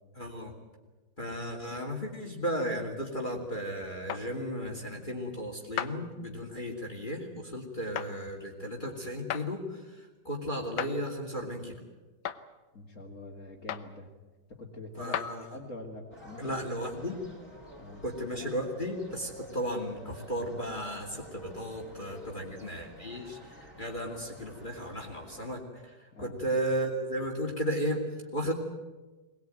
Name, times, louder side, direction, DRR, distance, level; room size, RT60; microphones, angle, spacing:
voice 1, 0.2-0.5 1.2-9.8 10.2-11.7 15.0-15.4 16.4-17.2 18.0-23.4 23.8-28.0 28.3-28.5, equal, 25° left, 0 dB, 2.8 m, -34 dB
sound 1, 4.1-4.3 5.8-6.0 8.0-8.1 9.3-9.5 10.8-11.0 12.3-12.4 13.7-13.9 15.1-15.3, left 10 dB, 85° left, 1.7 m, -33 dB
voice 2, 12.7-14.1 14.5-16.7 17.8-18.0 22.1-22.5 23.1-23.2 23.7-23.9 26.1-26.4, left 2 dB, 40° left, -3 dB, 2.8 m, -46 dB
sound 2, 16.1-25.6, equal, 10° right, 4.0 m, -49 dB
22.5 x 19.5 x 9.2 m, 1.2 s
omnidirectional pair, 2.1 m